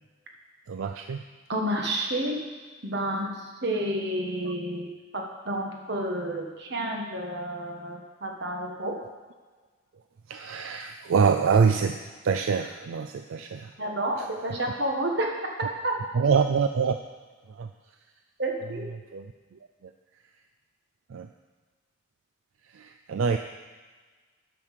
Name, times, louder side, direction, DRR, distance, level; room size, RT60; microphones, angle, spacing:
voice 1, 0.7-1.2 4.4-4.5 10.3-12.0 12.2-13.7 14.2-14.3 16.1-17.0 17.6-17.7 19.1-19.3 21.1-21.3 22.7-23.4, right 5 dB, 75° right, 7 dB, 0.4 m, -25 dB
voice 2, 1.5-2.4 2.8-9.0 13.8-15.3 15.6-15.9 18.4-18.8, right 1 dB, 55° right, 1 dB, 1.4 m, -30 dB
8.9 x 6.2 x 6.6 m, 1.4 s
head